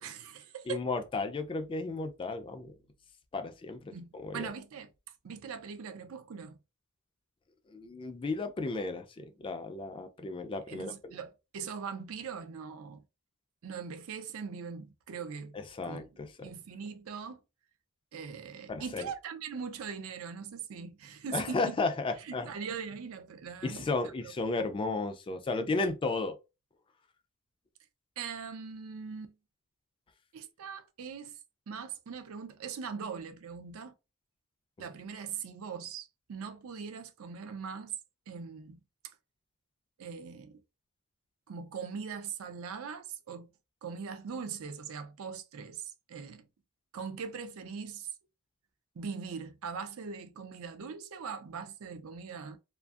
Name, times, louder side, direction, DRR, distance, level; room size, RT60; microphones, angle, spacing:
voice 1, 0.0-0.8 3.9-4.9 5.2-6.6 10.7-13.0 13.6-16.1 16.4-17.4 18.1-21.8 22.2-24.1 28.2-29.4 30.3-31.4 31.7-33.9 34.8-37.9 38.3-38.8 40.0-40.6 41.5-43.5 43.8-46.5 46.9-48.1 49.0-52.6, right 6 dB, 70° right, 0.4 m, -41 dB
voice 2, 0.7-2.7 3.3-4.5 7.7-11.1 15.5-16.5 18.7-19.1 21.3-22.5 23.6-26.4, left 3 dB, 25° left, 0.3 m, -34 dB
2.5 x 2.5 x 2.3 m
head